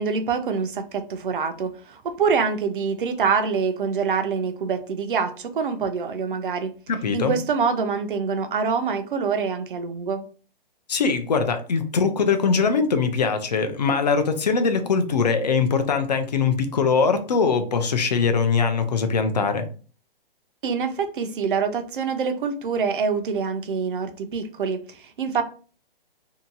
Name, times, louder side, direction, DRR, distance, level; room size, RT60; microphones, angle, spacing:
voice 1, 0.0-6.7 7.1-10.2 20.6-25.4, right 5 dB, 60° right, 0.6 m, -25 dB
voice 2, 6.9-7.4 10.9-19.7, left 5 dB, 45° left, 0.5 m, -22 dB
2.7 x 2.2 x 2.7 m
hypercardioid pair, 170°, 29 cm